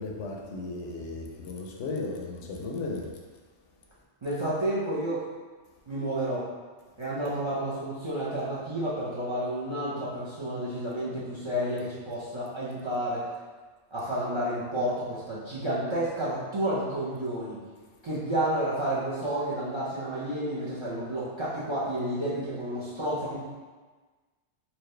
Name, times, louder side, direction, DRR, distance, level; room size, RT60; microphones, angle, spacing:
voice 1, 0.0-3.1, left 3 dB, 75° left, -1 dB, 0.9 m, -35 dB
voice 2, 4.2-5.3 5.9-6.5 7.0-13.3 13.9-17.6 18.0-23.4, right 1 dB, 30° right, -8 dB, 0.6 m, -30 dB
4.2 x 2.4 x 3.2 m, 1.3 s
omnidirectional pair, 1.2 m